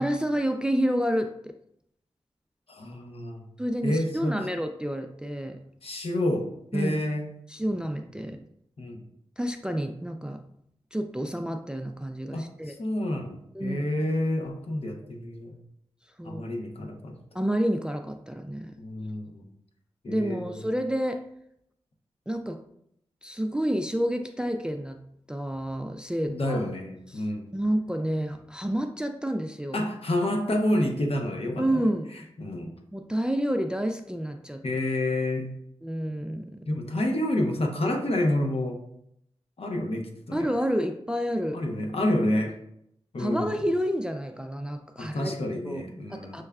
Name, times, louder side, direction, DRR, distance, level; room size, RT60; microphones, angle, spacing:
voice 1, 0.0-1.5 3.6-5.6 6.7-7.0 7.5-8.4 9.4-10.4 10.9-12.7 13.5-13.9 16.2-16.4 17.3-18.7 20.1-21.2 22.3-22.6 23.2-25.0 25.3-26.6 27.1-27.2 27.5-29.8 31.6-32.1 32.9-34.6 35.8-36.6 40.3-41.6 43.2-45.3 45.6-45.8 46.1-46.4, equal, 5° right, 6 dB, 0.3 m, -29 dB
voice 2, 2.7-3.4 3.8-4.4 5.8-7.3 8.8-9.0 12.3-15.6 16.2-17.2 18.8-19.5 20.0-20.6 26.2-27.5 29.7-31.8 32.4-32.7 34.6-35.6 36.7-38.8 39.6-40.5 41.5-42.6 43.1-43.5 45.0-46.4, left 1 dB, 60° left, 2 dB, 0.8 m, -29 dB
6.2 x 2.2 x 2.3 m, 0.74 s
cardioid pair, 45°, 11 cm